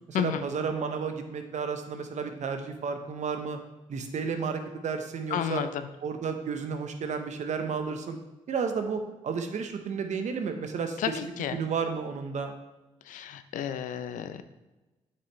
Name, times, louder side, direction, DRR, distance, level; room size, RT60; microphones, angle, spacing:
voice 1, 0.1-3.6 3.9-5.6 6.0-8.2 8.5-12.5, right 5 dB, 65° right, 6 dB, 0.9 m, -32 dB
voice 2, 5.3-5.8 11.0-11.6 13.1-14.4, left 9 dB, 85° left, 11 dB, 0.5 m, -31 dB
7.9 x 6.1 x 3.1 m, 1.1 s
cardioid pair, 65°, 13 cm